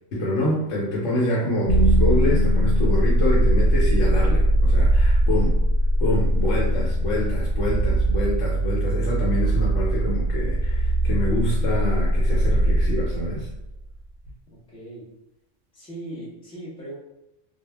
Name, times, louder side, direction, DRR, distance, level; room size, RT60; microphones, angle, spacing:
voice 1, 0.1-5.5 6.0-13.5, left 1 dB, 80° left, -6 dB, 1.0 m, -26 dB
sound 1, 1.7-13.8, right 1 dB, 90° right, 0.9 m, -21 dB
voice 2, 14.5-15.1 15.7-17.0, right 1 dB, 5° left, -7 dB, 0.6 m, -38 dB
2.4 x 2.0 x 3.2 m, 0.90 s
omnidirectional pair, 1.3 m